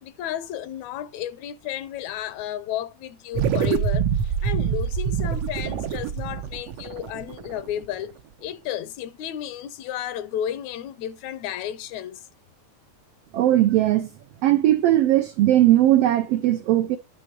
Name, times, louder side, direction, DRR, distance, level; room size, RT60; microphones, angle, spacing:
voice 1, 0.0-12.2, left 11 dB, 80° left, 1.8 m, -33 dB
sound 1, 3.3-8.0, right 8 dB, 70° right, 1.6 m, -25 dB
voice 2, 13.3-14.1 14.4-17.0, right 13 dB, 90° right, 1.3 m, -18 dB
10.0 x 3.7 x 5.9 m
omnidirectional pair, 3.4 m